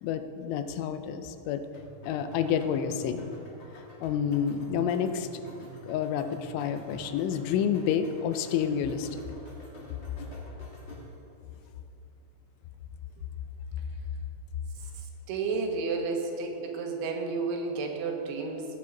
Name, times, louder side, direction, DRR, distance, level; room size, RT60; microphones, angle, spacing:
voice 1, 0.0-1.6 2.0-3.3 3.7-5.4 5.8-9.2, left 8 dB, 90° left, 9 dB, 3.1 m, -29 dB
sound 1, 1.7-11.2, left 1 dB, 35° left, 2.1 m, -48 dB
voice 2, 15.3-18.7, right 4 dB, 80° right, 2 dB, 3.4 m, -31 dB
18.5 x 7.7 x 3.8 m, 2.7 s
omnidirectional pair, 5.3 m